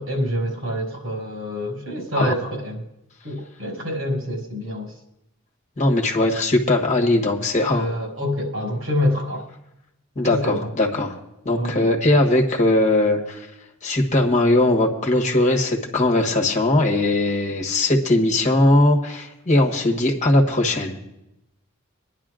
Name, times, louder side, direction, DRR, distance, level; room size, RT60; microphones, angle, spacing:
voice 1, 0.0-2.8 3.2-4.9 7.7-9.5 10.2-10.7 11.6-11.9, left 1 dB, 85° right, -1 dB, 5.0 m, -26 dB
voice 2, 5.8-7.9 10.1-11.2 11.4-13.5 13.8-21.0, left 1 dB, 35° left, 1 dB, 1.4 m, -19 dB
25.0 x 10.5 x 2.5 m, 0.88 s
head